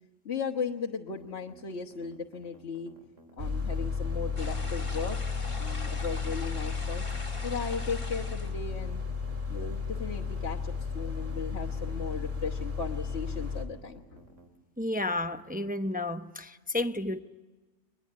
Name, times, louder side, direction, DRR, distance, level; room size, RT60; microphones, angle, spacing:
voice 1, 0.2-2.9 3.4-5.2 5.6-7.0 7.4-9.0 9.5-14.2, left 5 dB, 60° left, 1.6 m, -36 dB
sound 1, 1.1-14.5, right 1 dB, 75° right, 3.1 m, -56 dB
sound 2, 3.4-13.6, left 4 dB, 40° right, 2.7 m, -33 dB
sound 3, 4.4-8.5, left 2 dB, 25° left, 2.0 m, -43 dB
voice 2, 14.8-17.2, left 2 dB, 10° right, 0.6 m, -31 dB
23.0 x 21.0 x 9.9 m
omnidirectional pair, 1.3 m